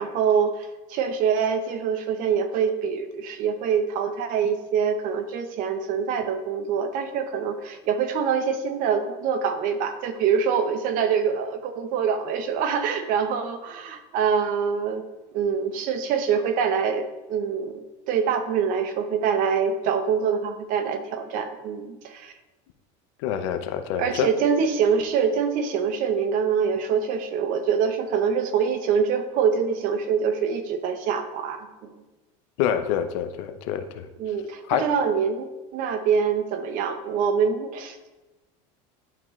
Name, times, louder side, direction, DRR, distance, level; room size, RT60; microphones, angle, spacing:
voice 1, 0.0-15.0 15.3-22.3 24.0-31.9 34.2-38.2, right 6 dB, 55° right, 8 dB, 0.8 m, -25 dB
voice 2, 23.2-24.3 32.6-34.0 34.7-34.8, left 9 dB, 80° left, 9 dB, 0.7 m, -26 dB
10.5 x 3.6 x 3.2 m, 1.1 s
supercardioid pair, 135°, 16 cm